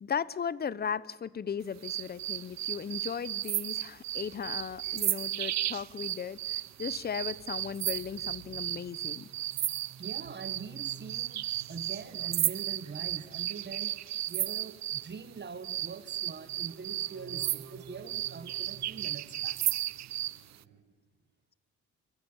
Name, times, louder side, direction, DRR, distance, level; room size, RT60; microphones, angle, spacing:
voice 1, 0.0-9.3, left 7 dB, 30° left, 20 dB, 0.8 m, -36 dB
sound 1, 1.8-15.1 15.6-20.4, right 13 dB, 65° right, 0.7 m, -34 dB
sound 2, 3.9-20.8, right 6 dB, 80° right, 4.6 m, -55 dB
voice 2, 10.0-19.6, right 5 dB, 35° right, 13 dB, 1.6 m, -44 dB
29.5 x 15.0 x 9.0 m, 1.3 s
cardioid pair, 90°, 30 cm